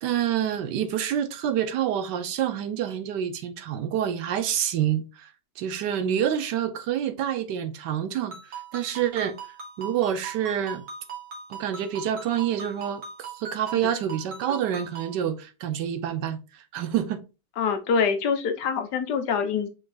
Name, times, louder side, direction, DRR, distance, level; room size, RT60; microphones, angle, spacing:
voice 1, 0.0-5.3 5.6-9.4 9.8-10.8 11.5-17.2, right 9 dB, 90° right, 1.3 m, -27 dB
Ringtone, 8.3-15.2, right 5 dB, 65° right, 1.7 m, -40 dB
voice 2, 17.6-19.7, left 6 dB, 75° left, 1.3 m, -25 dB
5.1 x 3.9 x 2.4 m
omnidirectional pair, 1.8 m